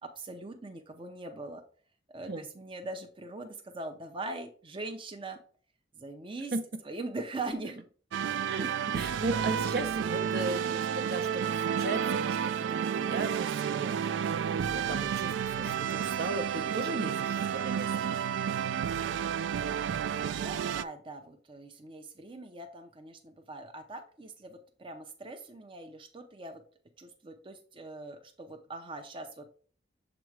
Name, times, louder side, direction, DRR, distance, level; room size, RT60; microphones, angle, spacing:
voice 1, 0.0-1.6 2.1-5.4 6.0-6.5 6.8-7.9 20.1-26.6 27.0-29.6, right 2 dB, 30° right, 5 dB, 0.6 m, -41 dB
sound 1, 8.1-20.8, right 8 dB, 80° right, 0.3 m, -31 dB
voice 2, 8.4-18.1, right 2 dB, 60° right, 8 dB, 0.8 m, -36 dB
7.1 x 3.0 x 4.6 m, 0.43 s
head